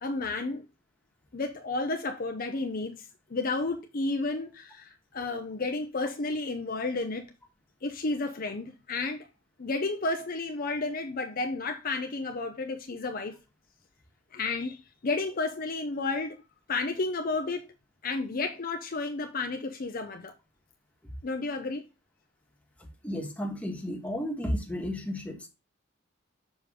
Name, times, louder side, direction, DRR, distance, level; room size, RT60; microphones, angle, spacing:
voice 1, 0.0-0.7 1.3-7.3 7.8-9.3 9.6-13.4 14.3-16.4 16.7-17.7 18.0-20.3 21.2-21.8, left 3 dB, 45° left, 0.7 m, -32 dB
voice 2, 22.8-25.5, equal, 5° left, 1.5 m, -33 dB
6.4 x 5.0 x 3.6 m
head